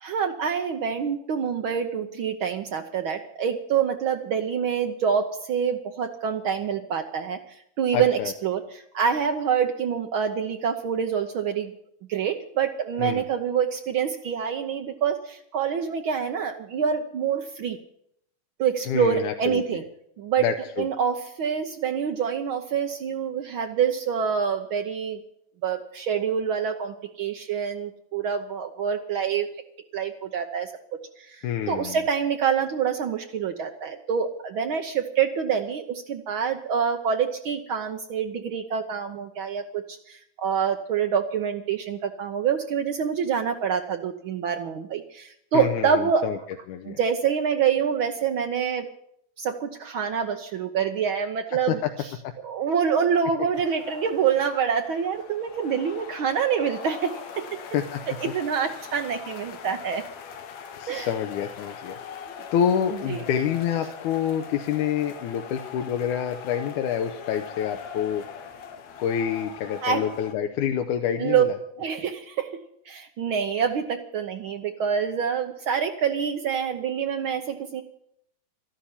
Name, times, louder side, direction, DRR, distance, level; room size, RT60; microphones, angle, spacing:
voice 1, 0.0-11.7 12.1-17.8 18.6-19.8 20.2-20.5 20.8-25.2 25.6-29.5 29.9-30.7 31.2-46.3 46.8-48.9 49.4-52.1 52.4-57.6 58.2-60.1 60.9-61.1 63.1-63.2 69.8-70.1 71.2-71.4 71.8-77.8, right 7 dB, 90° right, 5 dB, 1.1 m, -26 dB
voice 2, 7.9-8.3 13.0-13.2 18.9-19.8 20.4-20.9 31.4-32.0 45.5-46.4 46.7-47.0 51.7-51.9 52.2-52.3 57.7-58.0 60.8-62.0 62.5-68.2 69.0-71.5, left 9 dB, 90° left, 5 dB, 2.3 m, -27 dB
sound 1, 53.5-70.3, left 7 dB, 65° left, 2.4 m, -41 dB
13.0 x 12.0 x 8.6 m, 0.72 s
omnidirectional pair, 3.5 m